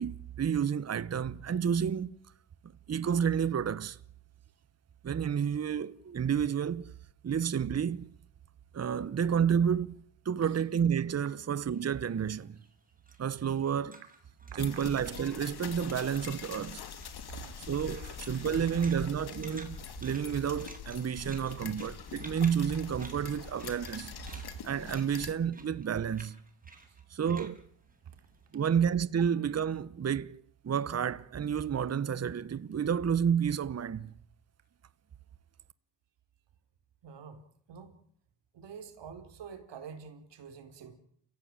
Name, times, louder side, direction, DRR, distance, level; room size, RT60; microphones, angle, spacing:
voice 1, 0.0-2.1 2.9-4.0 5.0-6.9 7.2-8.1 8.7-12.6 13.2-14.0 14.6-16.9 17.7-26.4 27.1-27.6 28.5-34.1, right 8 dB, 35° right, 1.0 m, -30 dB
sound 1, 11.6-15.6 15.8-16.6 16.9-28.8, right 2 dB, 20° right, 6.8 m, -54 dB
voice 2, 14.5-14.8 17.4-18.9 26.9-27.0 28.5-28.6 37.0-37.9 38.5-41.0, right 6 dB, 70° right, 4.2 m, -48 dB
sound 2, 14.6-25.3, left 7 dB, 60° left, 2.8 m, -44 dB
29.5 x 16.0 x 8.9 m
cardioid pair, 95°, 43 cm